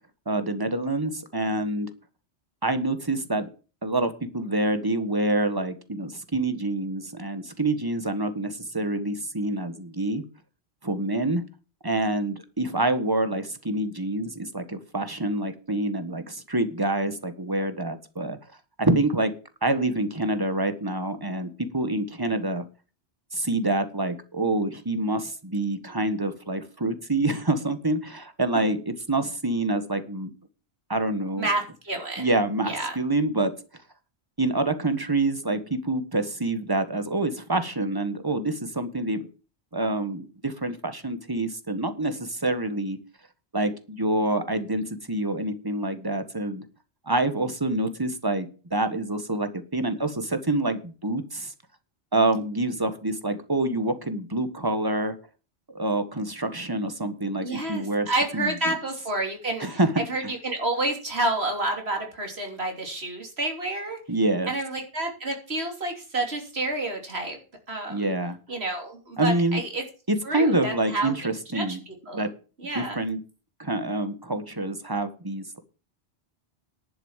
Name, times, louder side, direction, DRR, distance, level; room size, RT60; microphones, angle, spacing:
voice 1, 0.3-1.9 2.6-3.5 3.8-10.2 10.8-11.4 11.8-18.4 18.8-19.3 19.6-22.6 23.3-30.3 30.9-31.5 32.2-33.5 34.4-39.2 39.7-43.0 43.5-46.6 47.1-51.5 52.1-55.1 55.7-58.1 58.3-58.5 59.6-59.9 64.1-64.5 67.9-68.4 69.2-69.6 70.1-71.8 72.1-72.3 72.7-73.2 73.6-75.6, right 2 dB, 20° right, 10 dB, 1.5 m, -26 dB
voice 2, 31.4-32.4 32.6-33.0 57.4-64.0 64.5-67.4 67.7-68.1 68.5-69.8 70.2-72.3 72.6-73.0, right 2 dB, 75° right, 3 dB, 3.4 m, -29 dB
11.0 x 7.1 x 7.4 m, 0.35 s
omnidirectional pair, 1.1 m